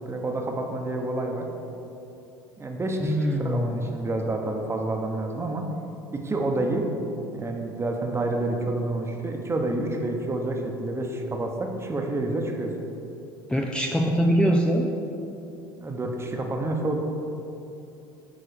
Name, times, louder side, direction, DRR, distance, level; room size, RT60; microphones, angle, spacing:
voice 1, 0.1-1.5 2.6-5.6 6.1-6.9 7.3-12.7 15.8-17.0, right 2 dB, 20° right, 2 dB, 1.1 m, -28 dB
voice 2, 3.1-3.9 13.5-14.9, equal, 5° left, 1 dB, 0.5 m, -23 dB
9.1 x 3.7 x 5.2 m, 2.8 s
hypercardioid pair, 75°, 12 cm